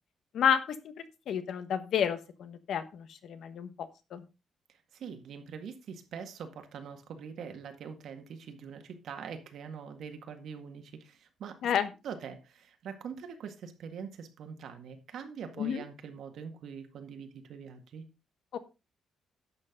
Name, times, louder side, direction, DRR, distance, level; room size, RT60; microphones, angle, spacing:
voice 1, 1.0-4.2 11.6-11.9 15.6-15.8 18.5-18.6, left 8 dB, 60° left, 1.2 m, -30 dB
voice 2, 4.7-11.6 12.0-18.1, right 6 dB, 60° right, 1.9 m, -43 dB
11.5 x 7.8 x 3.9 m
cardioid pair, 170°, 0 cm